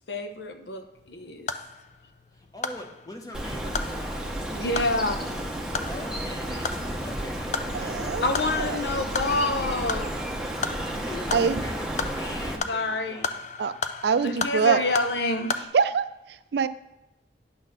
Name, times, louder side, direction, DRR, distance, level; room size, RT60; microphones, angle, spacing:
voice 1, 0.1-1.5 4.5-5.2 8.2-10.1 12.7-13.3 14.2-15.5, left 2 dB, 75° left, 7 dB, 0.8 m, -27 dB
sound 1, 0.9-15.6, left 5 dB, 40° left, 0.4 m, -36 dB
voice 2, 2.3-9.2 11.0-13.4, left 1 dB, 20° left, 3 dB, 1.0 m, -42 dB
Bird, 3.3-12.6, right 1 dB, 5° right, 0.8 m, -32 dB
voice 3, 7.7-8.8 11.3-11.6 13.6-13.7 14.0-14.8 15.7-16.7, right 6 dB, 65° right, 13 dB, 0.4 m, -25 dB
9.8 x 4.0 x 6.6 m, 0.93 s
head